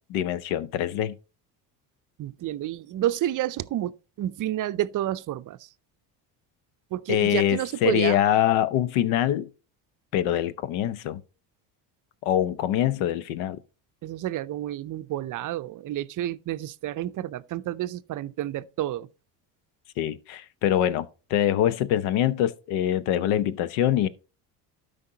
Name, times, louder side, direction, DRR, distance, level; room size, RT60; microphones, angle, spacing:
voice 1, 0.1-1.1 7.1-9.5 10.1-11.2 12.2-13.6 20.0-24.1, left 11 dB, 80° left, 0.8 m, -24 dB
voice 2, 2.2-5.7 6.9-8.2 14.0-19.1, right 13 dB, 40° right, 0.5 m, -30 dB
12.5 x 5.2 x 2.8 m
supercardioid pair, 85°, 48 cm